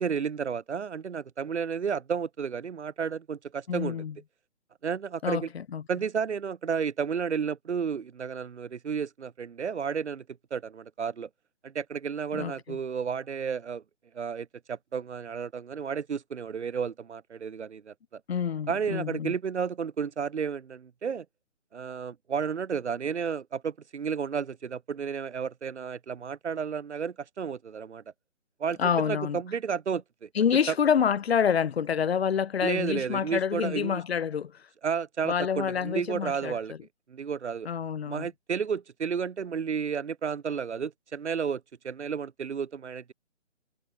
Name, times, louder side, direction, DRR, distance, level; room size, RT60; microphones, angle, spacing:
voice 1, 0.0-4.0 4.8-5.5 5.9-10.2 10.5-11.3 11.6-13.8 14.1-18.2 18.7-21.3 21.7-28.0 28.6-28.8 29.0-30.3 30.7-30.8 32.6-34.0 34.8-36.7 37.1-37.7 38.1-43.1, right 6 dB, 70° right, 1.0 m, -32 dB
voice 2, 3.7-4.1 5.2-5.8 12.3-12.8 18.3-19.3 28.8-29.4 30.4-34.5 35.2-36.8 37.7-38.3, left 7 dB, 60° left, 0.5 m, -27 dB
hypercardioid pair, 170°, 36 cm